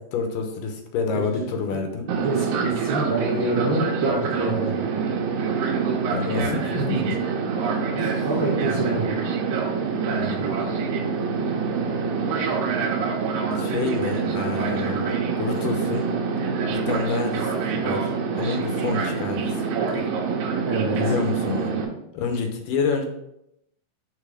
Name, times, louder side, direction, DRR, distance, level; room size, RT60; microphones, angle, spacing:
voice 1, 0.1-2.1 6.1-7.2 8.0-8.3 10.0-10.7 13.5-16.1 16.7-19.6 19.9-20.1 21.0-21.8 22.1-23.1, left 5 dB, 75° left, 4 dB, 2.5 m, -28 dB
voice 2, 1.1-4.8 6.8-7.0 8.2-9.1 20.6-21.0, right 2 dB, 75° right, -3 dB, 1.2 m, -27 dB
Fixed-wing aircraft airplane, 2.1-21.9, right 5 dB, 90° right, 2.7 m, -26 dB
6.9 x 4.0 x 5.0 m, 0.80 s
omnidirectional pair, 4.0 m